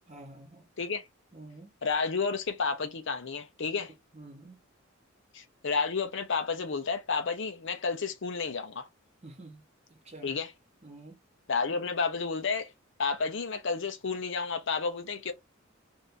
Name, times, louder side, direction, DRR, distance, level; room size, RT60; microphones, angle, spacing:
voice 1, 0.1-0.7 1.3-1.7 4.1-4.6 9.2-9.6 9.9-10.3 10.8-11.2, right 2 dB, 35° right, 1.0 m, -49 dB
voice 2, 1.8-3.9 5.3-8.9 10.2-10.5 11.5-12.7 13.0-15.3, left 4 dB, 65° left, 0.7 m, -31 dB
2.8 x 2.6 x 3.4 m
head